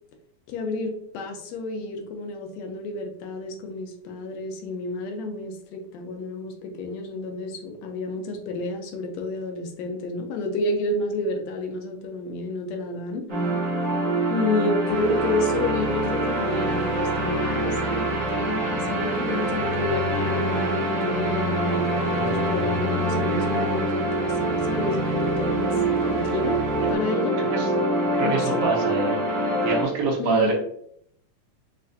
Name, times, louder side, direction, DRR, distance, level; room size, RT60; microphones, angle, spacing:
voice 1, 0.5-13.3 14.3-26.6 26.9-27.4 28.2-28.6 30.2-30.5, left 2 dB, 75° left, 4 dB, 1.7 m, -30 dB
sound 1, 13.3-29.8, right 1 dB, 35° right, 1.0 m, -25 dB
sound 2, 14.9-26.9, right 1 dB, 85° right, 2.0 m, -31 dB
voice 2, 22.1-22.7 26.8-26.9 27.5-27.7 28.1-29.2 29.6-30.5, right 3 dB, 65° right, -2 dB, 1.7 m, -26 dB
6.4 x 2.4 x 2.6 m, 0.69 s
omnidirectional pair, 3.4 m